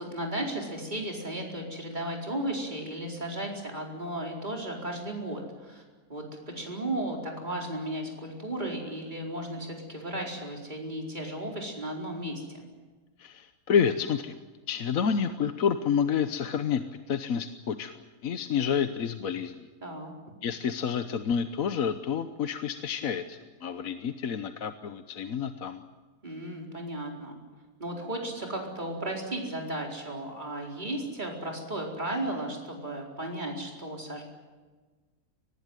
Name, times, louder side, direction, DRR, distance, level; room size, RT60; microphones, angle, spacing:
voice 1, 0.0-5.8 6.1-12.7 19.8-20.1 26.2-27.4 27.8-34.2, right 1 dB, 30° right, 0 dB, 4.7 m, -35 dB
voice 2, 13.2-14.4 14.7-19.7 20.4-25.8, left 7 dB, 65° left, 9 dB, 1.3 m, -29 dB
24.0 x 19.5 x 9.2 m, 1.3 s
omnidirectional pair, 1.7 m